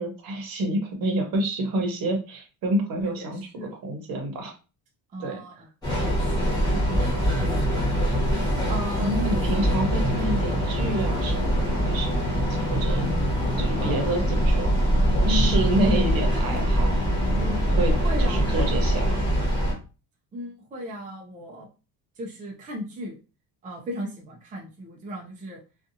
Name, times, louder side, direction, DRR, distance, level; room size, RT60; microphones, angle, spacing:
voice 1, 0.0-4.5 5.2-5.4 9.0-12.2 12.7-13.1 13.6-14.8 15.3-17.0 17.8-19.2, right 1 dB, 60° right, 3 dB, 0.9 m, -28 dB
voice 2, 3.2-3.7 5.1-5.7 6.0-7.1 7.4-7.9 8.7-9.3 15.2-15.6 17.4-17.7 18.0-18.5 20.3-21.7 22.2-23.2 23.6-25.6, left 1 dB, 20° right, -1 dB, 0.5 m, -36 dB
Train, 5.8-19.7, equal, 10° left, 1.2 m, -23 dB
2.6 x 2.4 x 2.6 m, 0.32 s
cardioid pair, 160°, 39 cm